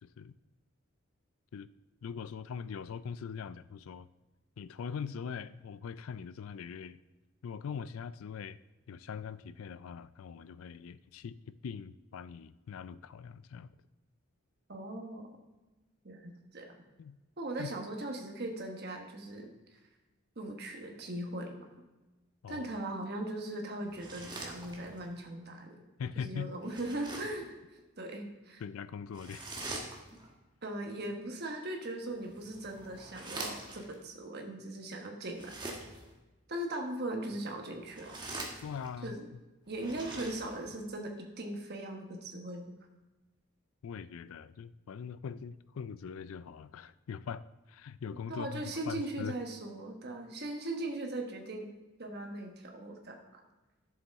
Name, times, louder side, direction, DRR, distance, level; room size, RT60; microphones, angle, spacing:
voice 1, 0.0-0.3 1.5-1.7 2.0-4.1 4.6-7.0 7.4-8.6 8.9-11.4 11.6-13.7 17.0-17.2 17.6-17.7 22.4-22.7 26.0-26.5 28.6-29.5 38.6-39.2 43.8-49.3, left 6 dB, 70° left, 15 dB, 0.4 m, -42 dB
voice 2, 14.7-15.2 16.0-16.8 17.4-19.8 20.4-21.7 22.5-25.8 26.1-28.6 30.6-35.8 36.5-38.2 39.0-39.3 39.7-42.7 48.3-51.7 52.0-53.4, right 1 dB, 45° right, 3 dB, 1.2 m, -39 dB
sound 1, 23.9-25.1 26.6-27.5 29.1-30.3 32.1-33.9 35.3-36.1 37.8-39.0 39.7-40.8, right 2 dB, 20° right, 1.2 m, -44 dB
11.0 x 7.1 x 3.6 m, 1.1 s
head